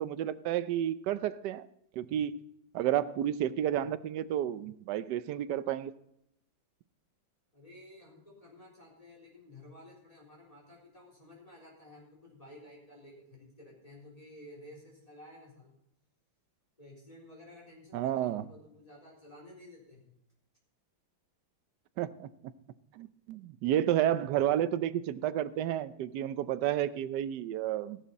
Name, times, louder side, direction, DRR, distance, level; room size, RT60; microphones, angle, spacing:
voice 1, 0.0-1.7 2.0-2.3 2.7-5.9 17.9-18.4 22.0-22.3 22.9-28.0, right 11 dB, 70° right, 14 dB, 1.1 m, -31 dB
voice 2, 7.5-15.7 16.8-20.1, left 1 dB, 15° left, -3 dB, 3.9 m, -53 dB
14.5 x 11.5 x 4.1 m, 0.77 s
omnidirectional pair, 2.2 m